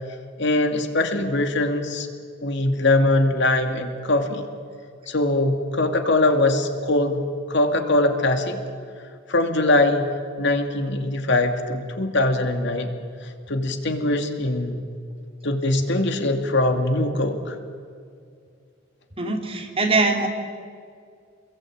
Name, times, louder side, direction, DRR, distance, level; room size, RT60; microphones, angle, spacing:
voice 1, 0.4-2.1 2.4-4.4 5.1-7.2 7.5-8.6 9.3-10.1 10.4-12.9 13.5-14.9 15.4-17.5, left 2 dB, 60° left, 5 dB, 2.5 m, -22 dB
voice 2, 19.2-20.3, right 3 dB, 30° right, 1 dB, 3.9 m, -22 dB
28.0 x 22.0 x 8.8 m, 2.2 s
head